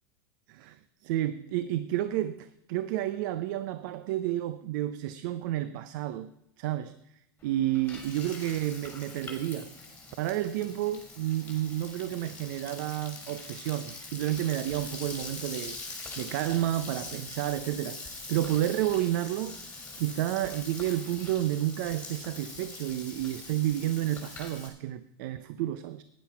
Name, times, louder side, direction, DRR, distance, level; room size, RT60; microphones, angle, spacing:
voice 1, 0.5-6.3 6.6-7.0 7.4-9.8 10.2-15.8 16.2-26.0, right 13 dB, 65° right, 15 dB, 0.6 m, -31 dB
Frying (food), 7.4-24.7, left 3 dB, 10° left, 3.7 m, -43 dB
11.5 x 10.0 x 5.6 m, 0.82 s
hypercardioid pair, 110°, 11 cm